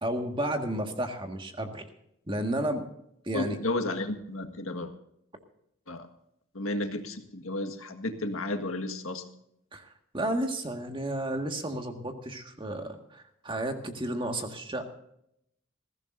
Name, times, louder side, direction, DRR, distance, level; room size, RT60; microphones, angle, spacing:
voice 1, 0.0-1.8 2.3-2.8 3.3-3.6 9.7-14.9, right 1 dB, 25° right, 4 dB, 1.8 m, -32 dB
voice 2, 3.3-4.9 5.9-6.1 6.6-9.2, left 2 dB, 85° left, 6 dB, 1.7 m, -32 dB
21.0 x 15.5 x 2.6 m, 0.75 s
head